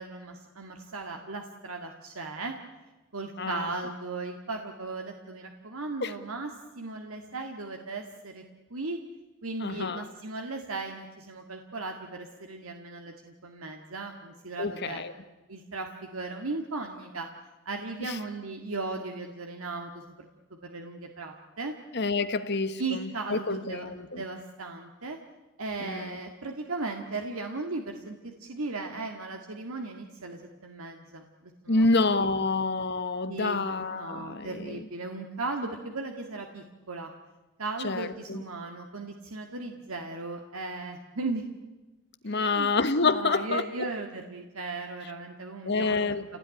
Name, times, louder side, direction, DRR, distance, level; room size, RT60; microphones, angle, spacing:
voice 1, 0.0-2.5 3.1-6.5 6.8-8.4 8.7-9.0 9.4-15.0 15.5-15.9 16.1-17.3 17.7-20.1 20.6-21.7 22.8-23.9 24.1-25.2 25.6-31.9 32.2-32.3 33.3-37.1 37.6-41.4 42.3-42.7 43.0-46.1, right 3 dB, 90° right, 4 dB, 2.0 m, -37 dB
voice 2, 3.4-3.7 6.0-6.1 9.6-10.0 14.6-15.1 18.0-18.2 21.9-24.2 25.8-26.2 31.7-34.8 37.8-38.4 42.2-43.6 45.6-46.2, left 3 dB, 55° left, 10 dB, 1.4 m, -28 dB
28.0 x 18.0 x 10.0 m, 1.2 s
head